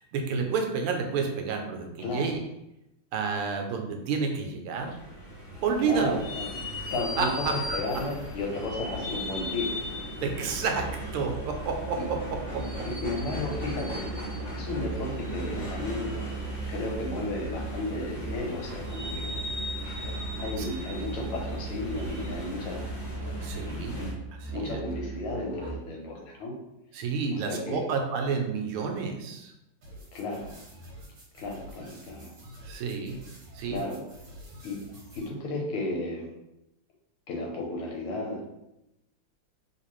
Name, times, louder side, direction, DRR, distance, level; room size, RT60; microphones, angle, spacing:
voice 1, 0.1-2.4 3.1-5.0 5.6-6.2 7.2-7.8 10.2-12.9 20.6-20.7 23.4-24.0 24.5-24.8 26.9-29.5 32.6-33.2 33.5-33.8, right 5 dB, 85° right, 3 dB, 1.5 m, -30 dB
voice 2, 2.0-2.4 5.8-6.6 6.9-9.8 12.0-12.1 12.8-14.1 14.5-16.1 16.7-19.3 20.4-22.8 23.9-24.1 24.5-26.5 27.3-27.8 30.1-30.5 31.3-32.3 33.7-34.0 34.6-34.8 35.1-36.3 37.3-38.4, left 2 dB, 85° left, 0 dB, 1.7 m, -33 dB
sound 1, 4.7-24.1, left 1 dB, 30° left, 1.2 m, -38 dB
Musical instrument, 10.7-26.0, right 5 dB, 25° right, 1.4 m, -38 dB
sound 2, 29.8-35.3, equal, 60° right, 1.4 m, -48 dB
3.2 x 3.1 x 3.0 m, 0.87 s
omnidirectional pair, 2.4 m